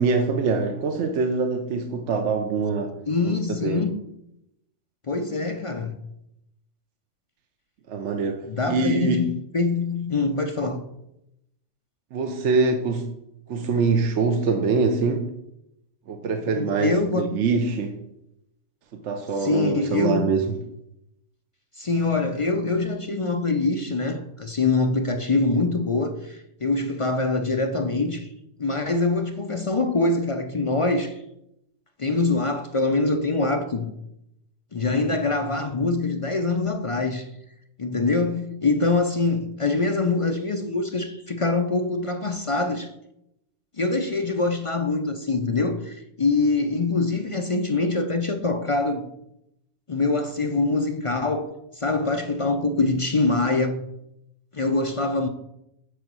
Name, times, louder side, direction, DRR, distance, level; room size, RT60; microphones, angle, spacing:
voice 1, 0.0-2.9 3.2-3.9 7.9-9.3 12.1-13.1 13.5-15.3 16.1-17.9 18.9-20.4, right 4 dB, 70° right, 1.0 m, -24 dB
voice 2, 3.1-3.9 5.1-6.0 8.4-10.8 16.5-17.4 19.4-20.3 21.8-28.3 28.6-31.2 32.0-33.9 34.7-37.3 37.8-42.9 43.8-49.1 49.9-53.8 54.5-55.3, left 3 dB, 50° left, 0.4 m, -24 dB
8.1 x 4.0 x 6.0 m
omnidirectional pair, 1.3 m